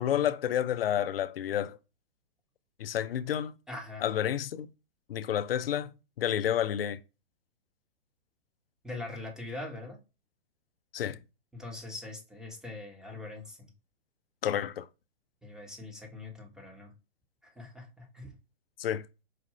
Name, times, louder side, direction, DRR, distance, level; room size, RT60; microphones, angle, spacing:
voice 1, 0.0-1.8 2.8-3.6 4.0-4.7 5.1-5.9 6.2-7.0 10.9-11.2 14.4-14.9 18.8-19.0, left 10 dB, 80° left, 0.5 m, -30 dB
voice 2, 3.7-4.0 8.8-10.0 11.5-13.7 15.4-16.9 17.4-18.3, left 2 dB, ahead, 1.0 m, -42 dB
4.8 x 2.5 x 3.1 m
hypercardioid pair, 125°, 29 cm